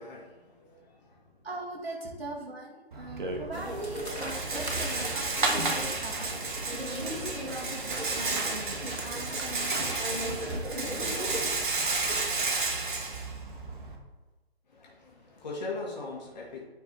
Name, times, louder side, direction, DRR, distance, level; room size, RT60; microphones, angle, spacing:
voice 1, 0.0-1.5 2.0-2.2 14.7-16.6, left 3 dB, 40° left, -3 dB, 1.9 m, -41 dB
voice 2, 1.4-8.7 9.0-10.0 10.2-11.5, right 1 dB, 65° right, -2 dB, 2.4 m, -40 dB
Rattle, 2.9-14.0, right 3 dB, 50° right, 1.2 m, -32 dB
sound 1, 3.5-11.4, equal, 85° right, 1.7 m, -38 dB
sound 2, 7.0-8.7 9.7-10.8 11.2-12.9, right 2 dB, 20° right, 0.9 m, -45 dB
9.5 x 4.6 x 4.0 m, 1.2 s
figure-of-eight pair, 140°, 32 cm